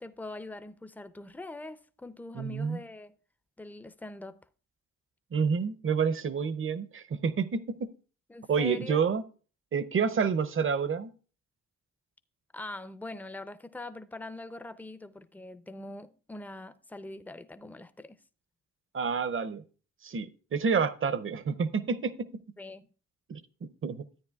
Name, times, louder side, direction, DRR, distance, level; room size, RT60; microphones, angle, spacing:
voice 1, 0.0-3.1 3.6-4.4 8.3-9.1 12.5-18.2 22.6-22.9, left 2 dB, 5° left, 0.5 m, -43 dB
voice 2, 2.3-2.8 5.3-7.9 8.5-9.2 9.7-11.1 18.9-19.6 20.0-22.3 23.3-24.1, right 6 dB, 40° right, 0.6 m, -29 dB
13.5 x 9.2 x 2.3 m
cardioid pair, 70°, 32 cm